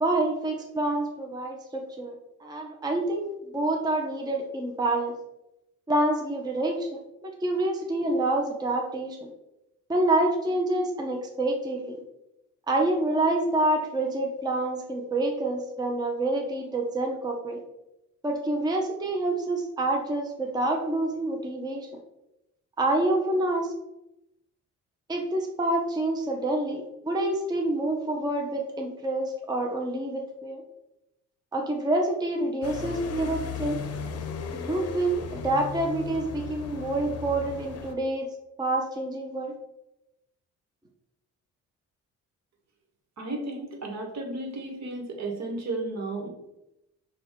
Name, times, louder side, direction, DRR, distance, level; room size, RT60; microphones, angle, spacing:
voice 1, 0.0-2.1 2.4-5.1 5.9-9.3 9.9-12.0 12.7-17.6 18.2-21.9 22.8-23.7 25.1-30.6 31.5-33.8 34.5-38.3 38.6-39.5, right 2 dB, 15° right, 2 dB, 0.6 m, -27 dB
quiet street, 32.6-37.9, left 6 dB, 55° left, 0.6 m, -36 dB
voice 2, 43.2-46.3, right 2 dB, 60° right, 2 dB, 1.2 m, -33 dB
6.0 x 2.3 x 3.5 m, 0.89 s
cardioid pair, 90°, 30 cm